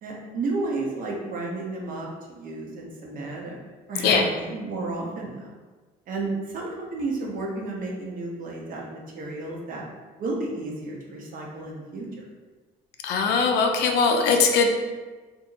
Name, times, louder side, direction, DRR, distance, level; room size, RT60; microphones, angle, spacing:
voice 1, 0.0-3.6 3.9-5.3 6.1-9.8 10.2-12.2, right 2 dB, 55° right, -2 dB, 0.7 m, -32 dB
voice 2, 13.0-14.7, left 5 dB, 80° left, 3 dB, 0.4 m, -20 dB
2.7 x 2.6 x 2.4 m, 1.3 s
cardioid pair, 110°, 17 cm